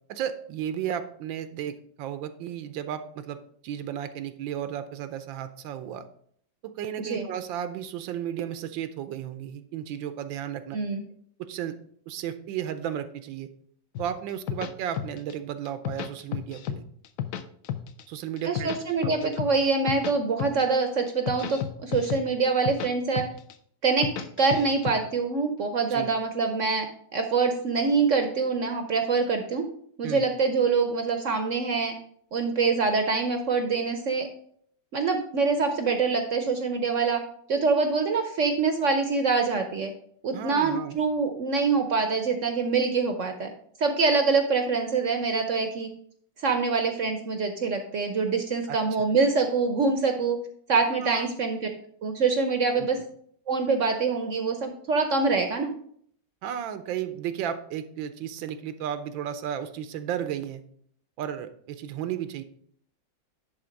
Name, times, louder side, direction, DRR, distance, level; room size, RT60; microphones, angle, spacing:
voice 1, 0.1-3.4 3.6-6.1 6.6-10.8 11.4-11.8 12.1-13.5 14.0-16.8 18.1-18.7 19.0-19.3 25.9-26.1 30.0-30.3 40.3-41.0 48.7-48.8 50.9-51.3 52.7-52.9 56.4-60.6 61.2-62.4, right 10 dB, 85° right, 11 dB, 1.4 m, -34 dB
sound 1, 14.0-15.3 15.7-16.8 17.0-18.0 18.4-20.1 20.4-20.7 21.1-22.9 23.2-23.5 23.9-24.9, left 10 dB, 70° left, 0.8 m, -32 dB
voice 2, 18.4-23.2 23.8-24.1 24.4-26.9 27.1-29.6 30.0-31.9 32.3-34.3 34.9-37.2 37.5-39.9 40.2-43.5 43.8-45.9 46.4-50.4 50.7-51.6 52.0-53.0 53.5-55.7, right 4 dB, 60° right, 6 dB, 0.8 m, -25 dB
10.5 x 3.6 x 5.1 m, 0.63 s
omnidirectional pair, 2.0 m